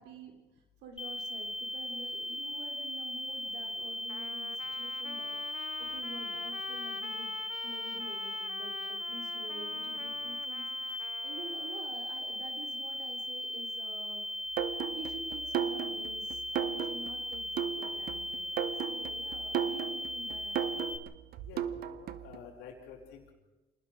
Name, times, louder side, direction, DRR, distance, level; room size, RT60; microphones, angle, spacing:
voice 1, 0.0-7.3 7.6-14.4 14.9-20.9, right 3 dB, 85° right, 3 dB, 3.5 m, -49 dB
sound 1, 1.0-21.0, left 1 dB, 30° left, 2.3 m, -38 dB
Trumpet, 4.1-11.9, left 14 dB, 70° left, 0.8 m, -47 dB
sound 2, 14.6-22.4, right 10 dB, 65° right, 1.2 m, -36 dB
voice 2, 21.5-23.3, left 6 dB, 90° left, -6 dB, 4.6 m, -49 dB
27.5 x 19.5 x 4.8 m, 1.1 s
cardioid pair, 110°, 17 cm